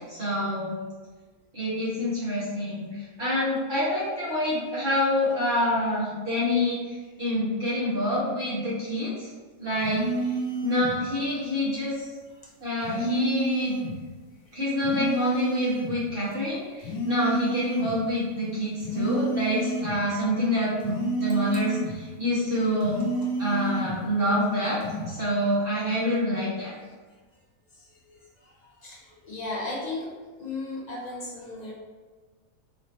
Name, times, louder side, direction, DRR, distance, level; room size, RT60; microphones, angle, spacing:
voice 1, 0.1-0.7 1.5-2.9 3.2-9.3 9.6-10.0 10.6-12.1 12.6-13.8 14.5-23.0 23.4-24.8 25.1-26.8, left 1 dB, 40° right, -10 dB, 1.8 m, -27 dB
sound 1, 9.8-11.0 12.8-14.0 14.8-16.0 16.8-18.0 18.8-20.0 20.8-22.0 22.8-24.0 24.8-25.1, right 3 dB, 90° left, 1.1 m, -30 dB
voice 2, 28.8-30.1 30.4-31.7, left 2 dB, 55° left, -3 dB, 0.4 m, -35 dB
4.1 x 3.0 x 2.9 m, 1.3 s
omnidirectional pair, 1.5 m